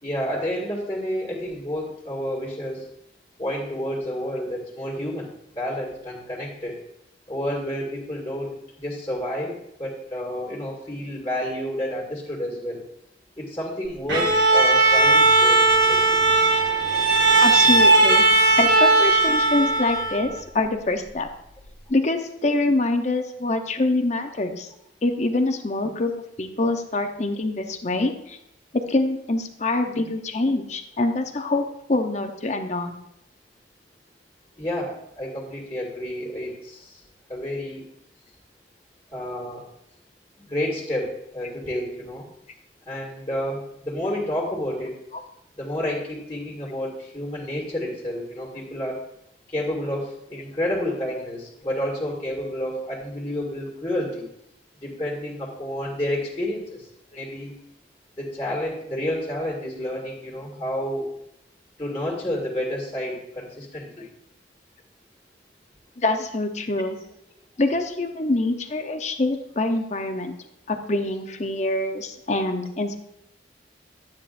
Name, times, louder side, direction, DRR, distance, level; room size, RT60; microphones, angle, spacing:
voice 1, 0.0-2.9 3.4-5.3 5.5-6.8 7.3-12.8 13.4-15.6 15.9-16.2 34.6-37.0 37.3-37.8 39.1-39.6 40.4-42.3 42.9-45.0 45.6-49.0 49.5-54.3 54.8-56.9 57.1-57.5 58.2-61.1 61.8-64.1, left 1 dB, 20° left, -3 dB, 2.0 m, -30 dB
Bowed string instrument, 14.1-20.4, right 2 dB, 75° right, 2.3 m, -17 dB
voice 2, 17.4-18.3 18.6-21.3 21.9-24.7 25.0-26.1 26.4-28.4 28.9-31.6 31.9-33.0 64.0-64.1 66.0-67.0 67.6-70.3 70.7-73.0, left 2 dB, 40° left, 6 dB, 0.8 m, -25 dB
12.0 x 8.9 x 2.6 m, 0.78 s
head